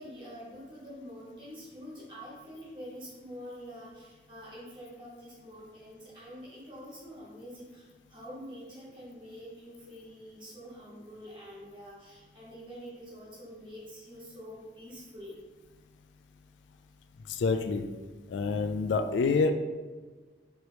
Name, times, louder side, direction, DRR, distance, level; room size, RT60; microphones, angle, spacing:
voice 1, 0.0-15.4, equal, 25° right, -7 dB, 1.4 m, -46 dB
voice 2, 17.3-17.9 18.3-19.5, left 4 dB, 90° left, 7 dB, 0.3 m, -27 dB
4.7 x 3.1 x 2.8 m, 1.3 s
head